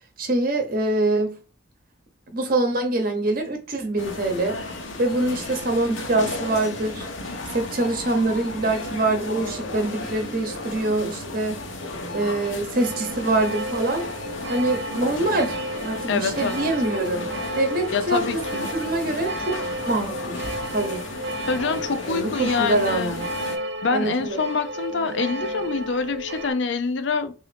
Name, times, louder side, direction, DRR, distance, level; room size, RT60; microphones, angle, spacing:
voice 1, 0.2-1.4 2.3-4.6 5.0-7.1 7.5-11.6 12.1-14.0 14.5-15.6 15.8-17.2 17.5-20.4 20.7-21.0 22.1-23.2 23.9-24.4, right 2 dB, 45° right, 0.9 m, -24 dB
sound 1, 4.0-23.6, left 2 dB, 80° left, 0.9 m, -34 dB
sound 2, 12.8-26.5, right 1 dB, 65° right, 0.5 m, -33 dB
voice 2, 16.1-16.7 17.9-18.7 21.5-23.2 23.8-27.3, left 4 dB, 65° left, 0.5 m, -26 dB
3.9 x 2.7 x 3.3 m
head